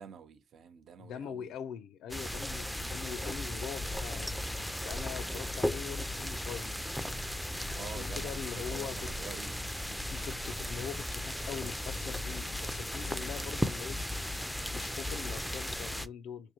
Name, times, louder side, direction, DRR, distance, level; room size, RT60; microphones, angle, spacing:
voice 1, 0.0-1.5 5.2-5.5 7.7-9.5, right 7 dB, 65° right, 0.5 m, -48 dB
voice 2, 1.0-6.8 7.8-9.1 10.1-14.0 14.7-16.5, left 8 dB, 80° left, 0.3 m, -43 dB
sound 1, 2.1-16.1, left 1 dB, 5° left, 0.3 m, -36 dB
4.4 x 2.6 x 2.8 m
cardioid pair, 90°, 0 cm